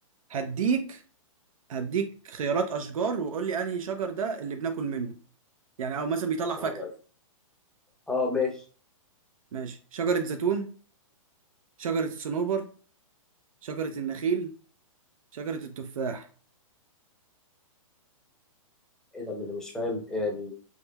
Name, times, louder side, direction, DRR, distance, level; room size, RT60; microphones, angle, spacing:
voice 1, 0.3-1.0 1.7-5.2 5.8-6.8 9.5-10.7 11.8-12.7 13.6-14.5 15.3-16.3, right 5 dB, 75° right, 6 dB, 0.5 m, -29 dB
voice 2, 6.6-6.9 8.1-8.6 19.1-20.5, left 3 dB, 5° left, -1 dB, 0.6 m, -30 dB
3.7 x 3.1 x 2.2 m, 0.40 s
hypercardioid pair, 150°, 18 cm